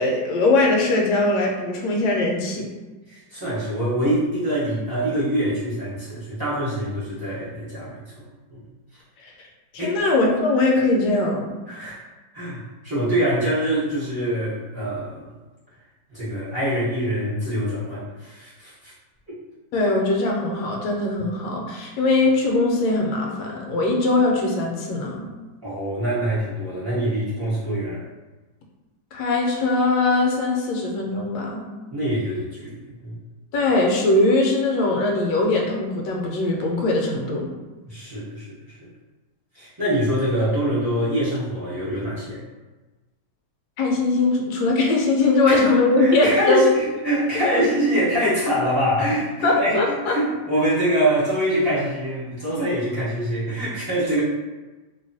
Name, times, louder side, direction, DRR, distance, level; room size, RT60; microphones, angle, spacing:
voice 1, 0.0-2.7 9.7-11.6 19.7-25.3 29.1-31.6 33.5-37.5 43.8-46.7 49.4-50.1, left 2 dB, 70° left, 0 dB, 1.0 m, -21 dB
voice 2, 3.1-8.0 8.5-8.6 9.8-10.0 11.7-12.0 12.3-15.3 16.1-18.9 19.3-19.4 25.6-28.0 31.9-33.1 37.8-38.9 39.5-42.4 45.5-45.6 46.0-54.2, equal, 30° right, -12 dB, 0.4 m, -24 dB
2.9 x 2.2 x 2.6 m, 1.2 s
omnidirectional pair, 1.9 m